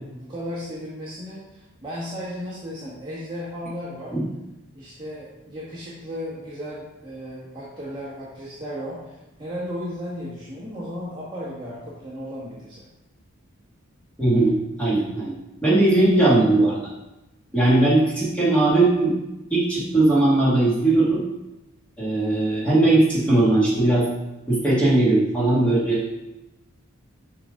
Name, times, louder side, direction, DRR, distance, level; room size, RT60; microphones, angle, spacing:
voice 1, 0.0-4.2 4.7-12.9 17.5-17.7, equal, 20° right, -8 dB, 1.6 m, -35 dB
voice 2, 14.2-16.8 17.5-19.2 19.5-21.2 22.0-24.1 24.5-26.2, right 2 dB, 5° left, -8 dB, 2.3 m, -19 dB
7.3 x 5.9 x 3.8 m, 0.98 s
head